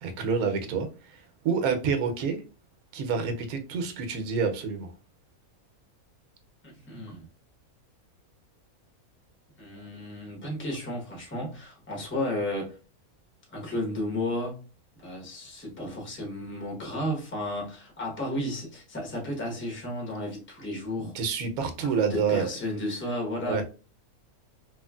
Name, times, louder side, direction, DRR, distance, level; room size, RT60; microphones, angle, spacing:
voice 1, 0.0-2.4 2.9-4.9 21.0-22.5 23.4-23.6, right 5 dB, 80° right, 1.1 m, -28 dB
voice 2, 6.6-7.3 9.6-12.8 13.5-14.6 15.0-21.1 21.9-23.6, left 1 dB, 10° left, 0.7 m, -33 dB
3.1 x 2.4 x 2.2 m
omnidirectional pair, 1.5 m